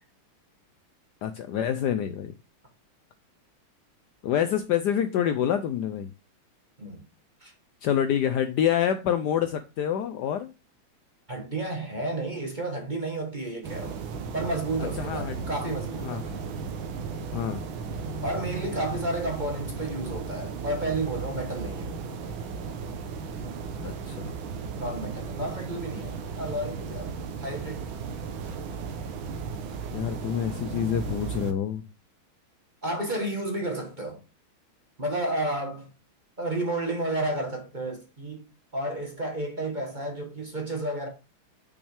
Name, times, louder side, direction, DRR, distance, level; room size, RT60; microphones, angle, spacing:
voice 1, 1.2-2.3 4.2-6.1 7.8-10.5 15.0-15.4 16.0-16.4 17.3-17.6 23.8-24.3 29.9-31.8, left 9 dB, 90° left, 0.9 m, -27 dB
voice 2, 11.3-14.0 14.3-16.3 18.2-22.0 24.7-27.1 27.4-27.9 32.8-34.2 35.0-35.9 36.4-38.5 38.7-41.1, right 1 dB, 25° right, 1.2 m, -31 dB
sound 1, 13.6-31.5, right 5 dB, 70° right, 1.7 m, -35 dB
6.4 x 5.8 x 3.4 m
omnidirectional pair, 2.4 m